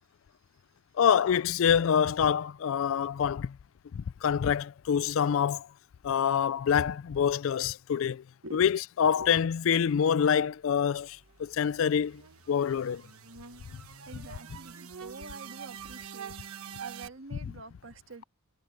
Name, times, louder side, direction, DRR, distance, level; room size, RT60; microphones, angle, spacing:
voice 1, 1.0-3.6 3.9-5.7 6.0-8.2 8.5-12.2 12.5-13.0, left 8 dB, 65° left, 0.3 m, -26 dB
sound 1, 10.7-17.1, right 7 dB, 90° right, 1.3 m, -46 dB
voice 2, 14.1-16.3 16.8-18.2, right 2 dB, 65° right, 1.9 m, -46 dB
head